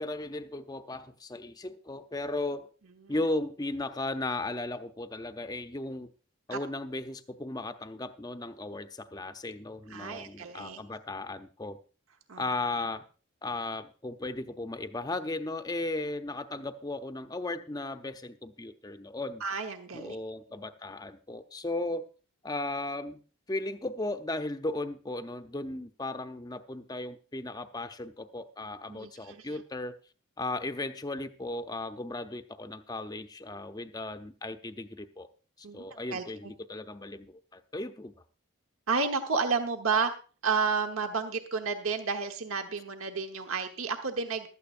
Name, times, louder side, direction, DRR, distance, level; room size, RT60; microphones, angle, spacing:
voice 1, 0.0-2.7 3.1-6.1 6.5-11.8 12.4-13.0 13.4-19.4 19.9-22.0 22.4-23.2 23.5-29.9 30.4-35.3 35.6-38.1, left 2 dB, 20° left, 8 dB, 0.6 m, -36 dB
voice 2, 9.9-10.8 12.3-12.5 19.4-20.2 28.9-29.6 35.6-36.5 38.9-40.1 40.4-44.5, right 5 dB, 80° right, 6 dB, 1.2 m, -31 dB
15.5 x 12.5 x 2.5 m, 0.36 s
head